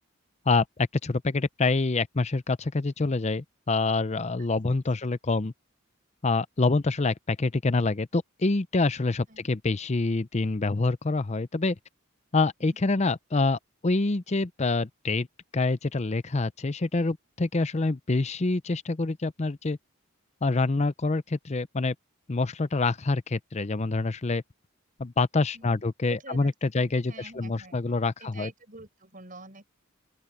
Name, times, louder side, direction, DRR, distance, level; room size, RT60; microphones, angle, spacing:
voice 1, 0.5-5.5 6.2-11.8 12.3-15.3 15.5-19.8 20.4-21.9 22.3-24.4 25.0-28.5, left 3 dB, 30° left, 0.6 m, -26 dB
voice 2, 12.6-12.9 25.5-29.7, right 2 dB, 40° right, 7.4 m, -48 dB
open air
head